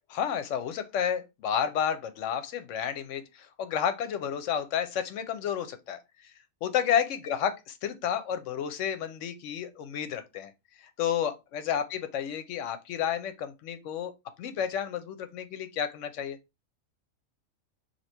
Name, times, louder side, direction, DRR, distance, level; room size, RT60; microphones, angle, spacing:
voice 1, 0.1-6.0 6.6-10.5 11.0-14.1 14.4-16.4, left 8 dB, 70° left, 0.9 m, -31 dB
2.9 x 2.7 x 4.3 m
omnidirectional pair, 1.5 m